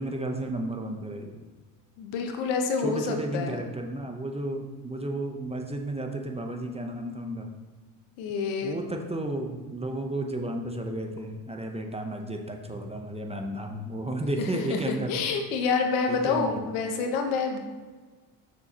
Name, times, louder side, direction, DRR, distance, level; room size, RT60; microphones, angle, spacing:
voice 1, 0.0-1.4 2.8-7.5 8.6-15.2 16.1-16.7, right 1 dB, 15° right, 3 dB, 0.8 m, -33 dB
voice 2, 2.0-3.6 8.2-8.8 14.4-17.6, left 5 dB, 75° left, 4 dB, 1.2 m, -28 dB
7.4 x 6.1 x 2.9 m, 1.3 s
supercardioid pair, 80°, 48 cm